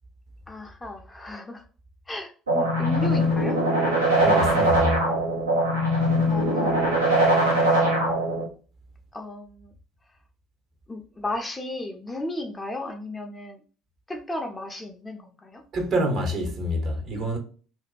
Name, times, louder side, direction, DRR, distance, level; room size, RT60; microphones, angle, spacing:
voice 1, 0.5-1.6 2.1-3.6 6.3-6.8 9.1-9.7 10.9-13.6 14.1-15.6, left 1 dB, 15° left, 0.5 m, -34 dB
sound 1, 2.5-8.5, right 1 dB, 80° right, 0.6 m, -21 dB
voice 2, 4.2-5.0 15.7-17.4, equal, 45° right, 0.7 m, -26 dB
2.6 x 2.1 x 2.2 m
figure-of-eight pair, 55°, 0 cm